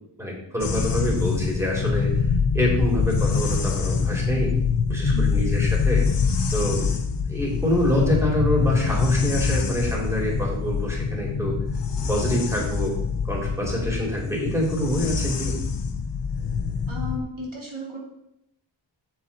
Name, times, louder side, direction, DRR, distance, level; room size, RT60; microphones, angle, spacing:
voice 1, 0.2-2.1 2.5-4.5 4.9-6.0 6.5-6.9 7.3-11.6 12.1-12.9 13.3-15.6, equal, 5° right, -3 dB, 3.1 m, -26 dB
sound 1, 0.6-17.2, left 5 dB, 60° left, 0.8 m, -25 dB
voice 2, 16.9-18.0, equal, 90° right, -2 dB, 2.4 m, -34 dB
7.2 x 7.0 x 4.2 m, 0.79 s
wide cardioid pair, 70°, 46 cm